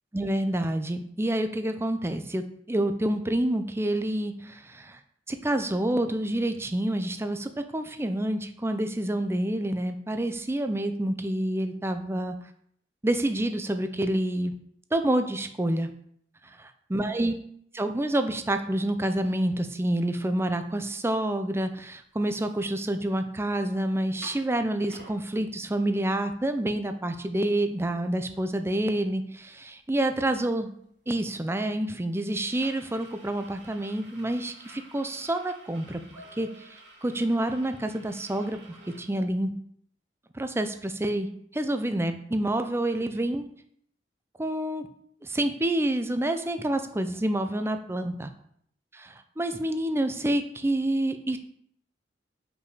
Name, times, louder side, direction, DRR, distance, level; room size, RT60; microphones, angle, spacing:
voice 1, 0.1-5.0 5.3-12.4 13.0-14.5 14.9-15.9 16.9-17.3 17.7-30.7 31.1-36.5 37.0-39.6 40.3-43.5 44.4-44.9 45.2-48.3 48.9-51.4, right 1 dB, 15° right, 8 dB, 0.5 m, -28 dB
sound 1, 21.6-21.7 22.0-23.2 23.6-23.7 24.0-25.2 25.8-25.9 26.2-39.0, right 2 dB, 85° right, 2.6 m, -52 dB
5.5 x 4.9 x 4.9 m, 0.66 s
head